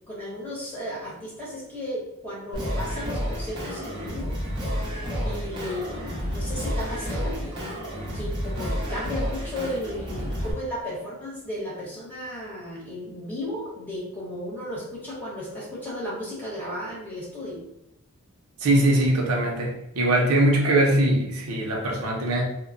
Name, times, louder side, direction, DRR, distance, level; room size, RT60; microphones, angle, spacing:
voice 1, 0.1-4.4 5.2-7.6 8.1-17.6, left 1 dB, 10° left, -8 dB, 1.0 m, -34 dB
Singing, 2.5-10.5, equal, 20° right, 0.7 m, -30 dB
voice 2, 18.6-22.4, right 1 dB, 85° right, -1 dB, 0.7 m, -21 dB
2.2 x 2.1 x 3.8 m, 0.82 s
head